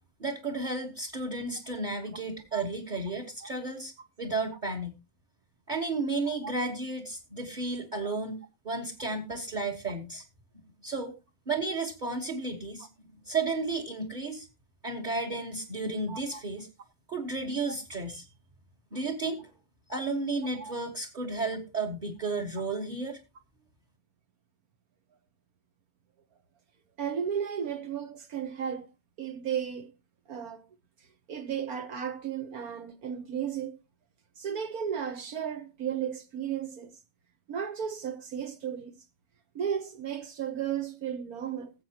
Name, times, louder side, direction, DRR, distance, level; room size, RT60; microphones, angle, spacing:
voice 1, 0.2-5.0 5.7-8.4 8.6-10.2 10.8-11.1 11.5-12.9 13.1-14.5 14.8-16.7 17.1-18.3 18.9-19.5 19.9-23.2, right 3 dB, 30° right, 1.5 m, -33 dB
voice 2, 16.1-16.4 20.5-20.7 27.0-28.9 29.2-29.9 30.3-30.6 31.3-33.8 34.4-37.0 37.5-39.0 39.5-41.7, right 8 dB, 75° right, 1.5 m, -34 dB
20.0 x 7.7 x 2.9 m
omnidirectional pair, 1.6 m